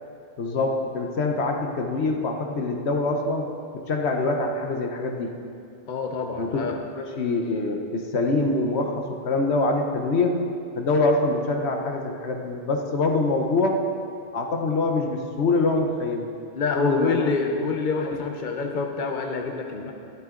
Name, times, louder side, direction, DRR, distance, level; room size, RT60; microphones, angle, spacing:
voice 1, 0.4-3.5 3.7-5.4 6.4-6.6 6.9-10.4 10.8-13.9 14.3-16.3 16.7-17.3, left 3 dB, 85° left, 3 dB, 1.2 m, -24 dB
voice 2, 5.9-6.8 16.5-19.9, left 4 dB, 50° left, 3 dB, 1.0 m, -27 dB
13.0 x 12.5 x 3.8 m, 2.5 s
omnidirectional pair, 1.1 m